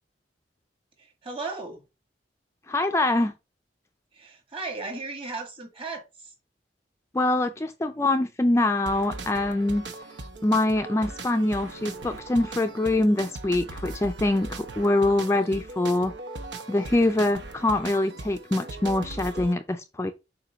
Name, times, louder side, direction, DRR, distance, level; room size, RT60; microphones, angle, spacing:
voice 1, 1.0-1.8 4.1-6.3, right 3 dB, 30° right, 1.9 m, -36 dB
voice 2, 2.7-3.3 7.1-9.9 10.4-16.1 16.7-20.1, left 2 dB, 15° left, 0.4 m, -24 dB
sound 1, 8.9-19.5, right 2 dB, 90° right, 0.9 m, -39 dB
7.4 x 2.7 x 5.0 m
head